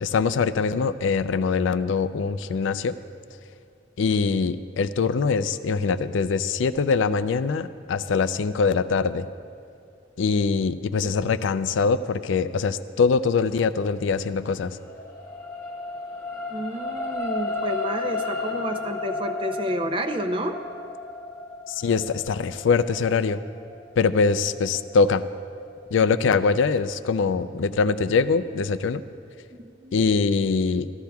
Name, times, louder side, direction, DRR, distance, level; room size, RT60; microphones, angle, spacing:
voice 1, 0.0-2.9 4.0-9.3 10.2-14.8 21.7-23.4 24.0-25.2 25.9-29.0 29.9-30.9, left 5 dB, 80° left, 13 dB, 0.4 m, -23 dB
sound 1, 14.1-26.6 27.1-27.2, left 3 dB, 15° left, 1.1 m, -34 dB
voice 2, 16.5-20.6 29.8-30.0, right 1 dB, 25° right, 6 dB, 0.5 m, -30 dB
15.0 x 13.0 x 2.3 m, 2.5 s
head